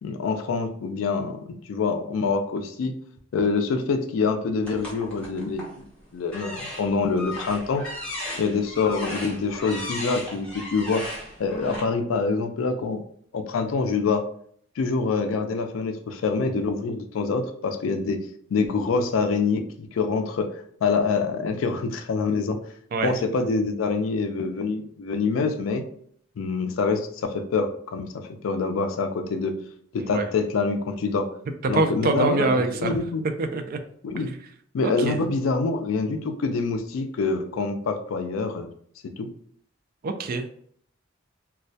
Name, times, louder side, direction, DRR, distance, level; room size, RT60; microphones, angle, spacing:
voice 1, 0.0-2.9 3.3-5.8 6.1-7.8 8.4-11.1 11.4-13.0 13.3-14.2 14.8-18.2 18.5-20.5 20.8-22.6 23.0-25.8 26.4-29.6 29.9-31.3 31.7-33.2 34.0-34.3 34.7-38.7 39.2-39.3, left 4 dB, 85° left, 7 dB, 0.3 m, -26 dB
sound 1, 4.6-5.8 6.3-11.8, left 1 dB, 5° left, 0.8 m, -36 dB
voice 2, 31.7-33.0 33.4-33.8 34.2-34.4 34.8-35.2 40.0-40.4, right 3 dB, 45° right, 7 dB, 0.3 m, -25 dB
2.2 x 2.1 x 2.6 m, 0.62 s
head